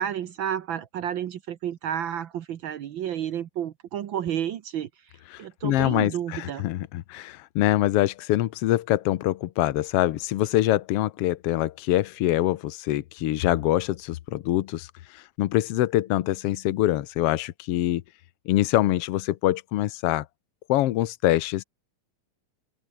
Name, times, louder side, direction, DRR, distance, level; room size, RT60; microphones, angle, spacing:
voice 1, 0.0-4.9 5.4-6.6, right 10 dB, 80° right, 1.1 m, -31 dB
voice 2, 5.3-18.0 18.5-20.2 20.7-21.6, left 14 dB, 75° left, 1.4 m, -24 dB
omnidirectional pair, 3.7 m